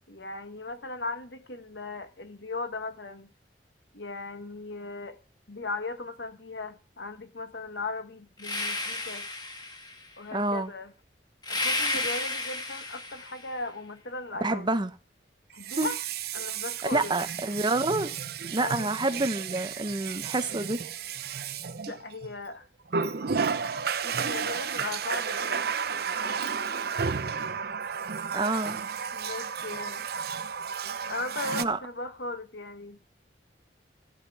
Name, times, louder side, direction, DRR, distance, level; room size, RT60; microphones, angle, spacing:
voice 1, 0.1-3.3 3.9-5.2 5.5-9.3 10.2-10.9 11.5-14.7 15.5-16.0 16.3-17.1 18.6-18.9 21.9-22.7 23.3-23.7 24.0-26.5 29.1-30.1 31.1-33.0, left 3 dB, 85° left, 1.6 m, -38 dB
sound 1, 8.4-10.1 11.4-13.5, left 2 dB, 25° left, 2.0 m, -32 dB
voice 2, 10.3-10.7 14.4-14.9 15.8-15.9 16.9-18.1 18.5-20.8 28.3-28.8 31.6-31.8, right 2 dB, 25° right, 1.0 m, -28 dB
Water tap faucet, 11.9-12.1 15.5-22.3 22.9-31.6, right 6 dB, 60° right, 0.7 m, -32 dB
14.0 x 7.5 x 4.8 m
head